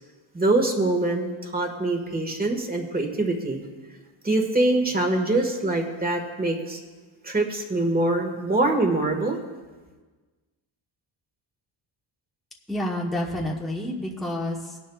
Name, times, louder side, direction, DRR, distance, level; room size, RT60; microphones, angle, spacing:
voice 1, 0.3-3.6 4.2-6.8 7.2-9.4, right 2 dB, 20° right, 3 dB, 1.6 m, -24 dB
voice 2, 12.7-14.8, left 1 dB, ahead, -2 dB, 1.0 m, -29 dB
19.5 x 10.5 x 2.4 m, 1.3 s
wide cardioid pair, 130°, 48 cm